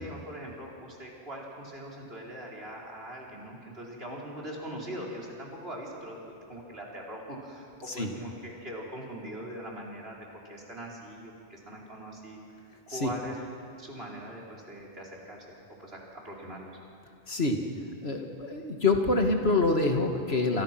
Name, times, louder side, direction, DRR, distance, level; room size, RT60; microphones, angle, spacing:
voice 1, 0.0-12.4 12.9-13.4 13.8-16.7, right 1 dB, 65° right, -3 dB, 5.0 m, -41 dB
voice 2, 17.3-17.6 18.0-20.6, left 3 dB, 70° left, 3 dB, 2.5 m, -26 dB
28.5 x 27.5 x 6.1 m, 2.4 s
omnidirectional pair, 1.1 m